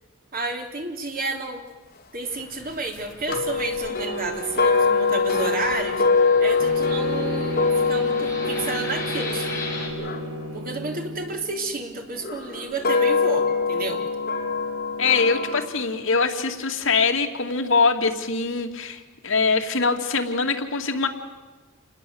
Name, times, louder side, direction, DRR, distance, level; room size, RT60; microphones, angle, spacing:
voice 1, 0.3-1.7 2.1-9.5 10.5-14.1, right 3 dB, 45° right, 3 dB, 3.5 m, -31 dB
Fixed-wing aircraft airplane, 2.2-9.9, left 3 dB, 15° left, 7.2 m, -39 dB
sound 1, 3.3-11.4 12.2-15.7, left 4 dB, 45° left, 2.7 m, -24 dB
Bowed string instrument, 6.6-11.4, right 1 dB, 70° right, 1.7 m, -34 dB
voice 2, 15.0-21.1, left 4 dB, 70° left, 3 dB, 2.5 m, -23 dB
29.0 x 20.5 x 8.0 m, 1.2 s
head